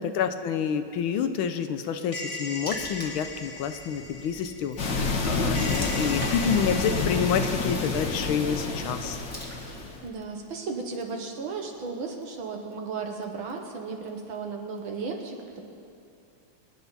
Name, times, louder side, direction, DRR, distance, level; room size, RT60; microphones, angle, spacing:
voice 1, 0.0-9.2, left 7 dB, 75° left, 9 dB, 1.5 m, -28 dB
sound 1, 2.1-5.2 5.5-7.6, left 2 dB, 20° left, 0.9 m, -39 dB
Water / Splash splatter, 2.7-10.1, left 1 dB, 5° left, 1.6 m, -43 dB
sound 2, 4.8-10.0, left 3 dB, 55° left, 2.0 m, -28 dB
voice 2, 9.6-15.6, right 4 dB, 70° right, 2 dB, 2.2 m, -35 dB
24.5 x 10.0 x 4.1 m, 2.8 s
omnidirectional pair, 2.3 m